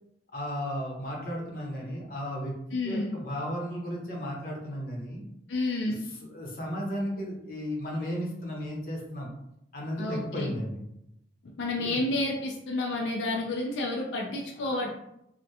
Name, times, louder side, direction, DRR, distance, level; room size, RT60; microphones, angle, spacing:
voice 1, 0.3-2.6 2.8-5.2 5.9-6.0 6.2-9.3 9.7-10.8 11.8-12.0 14.6-14.9, equal, 50° left, -2 dB, 0.8 m, -34 dB
voice 2, 2.7-3.1 5.5-6.0 10.0-10.5 11.6-14.9, left 2 dB, 85° left, 0 dB, 0.4 m, -30 dB
3.4 x 2.1 x 2.7 m, 0.81 s
head